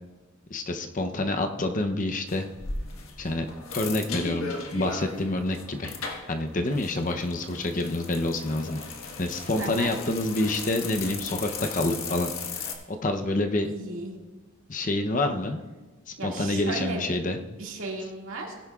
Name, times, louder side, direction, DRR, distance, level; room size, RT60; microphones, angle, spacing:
voice 1, 0.5-2.5 3.2-3.5 3.7-5.9 6.3-8.8 9.2-13.7 14.7-15.6 16.1-17.4, left 2 dB, 35° left, 5 dB, 0.7 m, -28 dB
sound 1, 2.3-12.7, left 4 dB, 80° left, 1.4 m, -37 dB
voice 2, 9.6-9.9 13.6-14.1 16.2-17.0 17.6-18.5, right 3 dB, 70° right, -1 dB, 2.1 m, -35 dB
17.0 x 10.0 x 2.4 m, 1.2 s
head